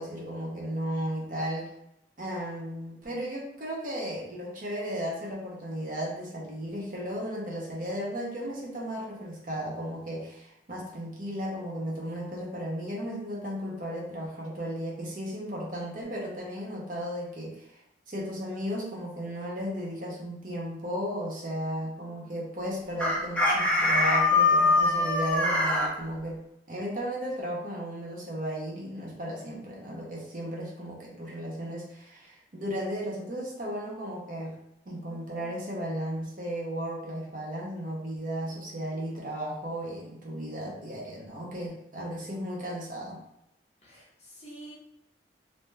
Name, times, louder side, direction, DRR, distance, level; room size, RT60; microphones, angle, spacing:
voice 1, 0.0-1.7 2.2-17.8 18.1-26.4 26.7-34.6 34.9-43.2, equal, 50° right, -3 dB, 0.6 m, -35 dB
voice 2, 21.8-22.4 34.9-35.6 43.8-44.7, right 1 dB, 40° left, -6 dB, 0.9 m, -50 dB
Chicken rooster, 23.0-25.9, left 2 dB, 5° left, 0.4 m, -23 dB
2.6 x 2.2 x 3.1 m, 0.83 s
head